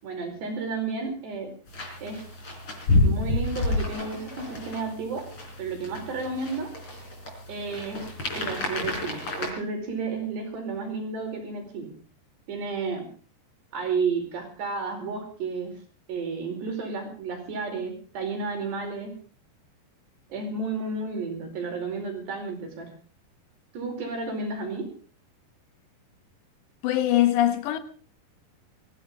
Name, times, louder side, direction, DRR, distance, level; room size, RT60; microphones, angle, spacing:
voice 1, 0.0-1.5 2.0-2.2 3.0-5.2 5.6-6.7 7.5-8.0 8.3-11.9 12.5-13.1 13.7-15.7 16.1-19.1 20.3-22.9 23.7-24.9, right 4 dB, 75° right, 6.8 m, -32 dB
sound 1, 1.7-9.5, left 2 dB, 30° left, 4.6 m, -29 dB
voice 2, 26.8-27.8, left 13 dB, 85° left, 3.6 m, -22 dB
23.0 x 16.5 x 3.7 m
omnidirectional pair, 4.9 m